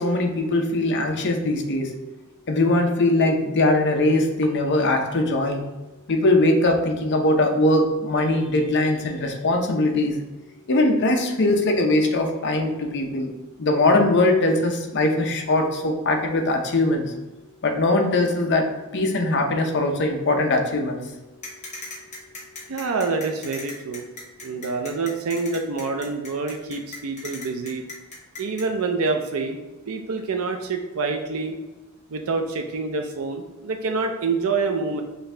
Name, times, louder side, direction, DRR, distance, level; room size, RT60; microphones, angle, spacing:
voice 1, 0.0-1.9 2.5-5.6 6.1-10.2 10.7-13.3 13.6-17.1 17.6-18.7 18.9-21.0, left 2 dB, 55° left, 3 dB, 0.7 m, -21 dB
sound 1, 21.4-28.6, left 3 dB, 35° left, 1.1 m, -38 dB
voice 2, 22.7-24.1 24.4-27.8 28.4-29.6 29.9-31.6 32.1-35.0, right 4 dB, 75° right, 4 dB, 0.5 m, -26 dB
5.7 x 2.7 x 3.3 m, 1.1 s
head